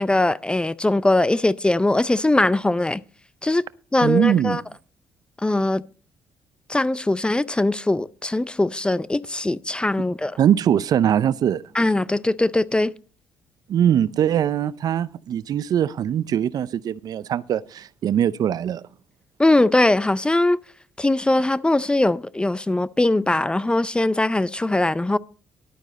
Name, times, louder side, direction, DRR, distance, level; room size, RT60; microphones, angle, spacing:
voice 1, 0.0-3.0 3.4-3.7 3.9-4.6 5.4-5.8 6.7-10.4 11.7-12.9 19.4-20.6 21.0-25.2, left 2 dB, 15° left, 0.5 m, -21 dB
voice 2, 4.0-4.6 10.4-11.6 13.7-18.8, right 9 dB, 60° right, 0.5 m, -21 dB
12.0 x 9.0 x 4.2 m
supercardioid pair, 60°, 7 cm